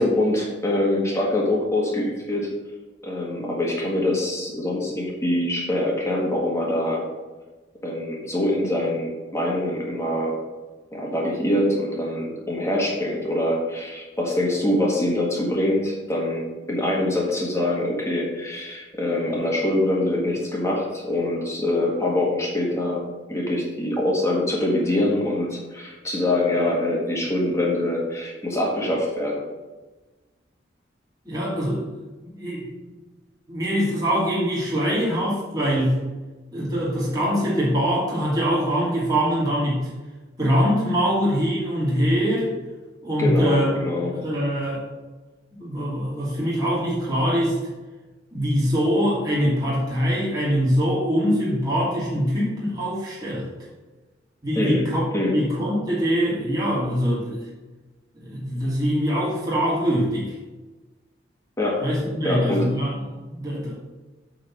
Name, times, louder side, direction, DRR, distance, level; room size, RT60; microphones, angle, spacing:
voice 1, 0.0-2.5 3.0-7.0 7.8-10.4 10.9-23.0 23.3-29.4 43.2-44.2 54.5-54.9 55.1-55.4 61.6-61.8 62.2-62.7, left 1 dB, 15° left, -3 dB, 1.7 m, -24 dB
voice 2, 31.2-32.0 32.3-32.8 33.5-35.9 36.5-39.9 40.4-42.5 43.0-43.8 44.1-44.9 45.6-47.6 48.3-53.5 54.4-57.4 58.2-60.3 61.8-63.7, equal, 20° right, -7 dB, 2.7 m, -23 dB
8.6 x 3.9 x 6.2 m, 1.2 s
head